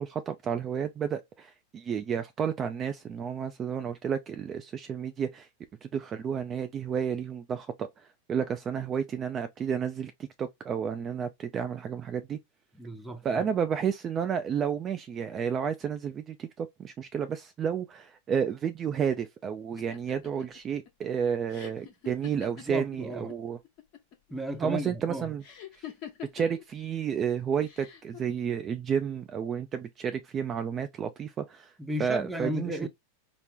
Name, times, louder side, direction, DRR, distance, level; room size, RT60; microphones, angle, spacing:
voice 1, 0.0-5.5 5.8-10.1 10.4-12.4 13.2-23.6 24.6-25.4 25.8-25.9 26.3-31.7 32.0-32.9, right 7 dB, 30° right, 0.5 m, -31 dB
voice 2, 12.7-13.4 19.7-19.8 22.6-23.4 24.3-25.3 31.8-32.9, equal, 5° right, 0.8 m, -35 dB
sound 1, 19.8-23.4 23.6-24.3 25.4-26.6 27.6-28.2, left 10 dB, 50° left, 1.1 m, -45 dB
4.3 x 2.0 x 3.4 m
hypercardioid pair, 100°, 0 cm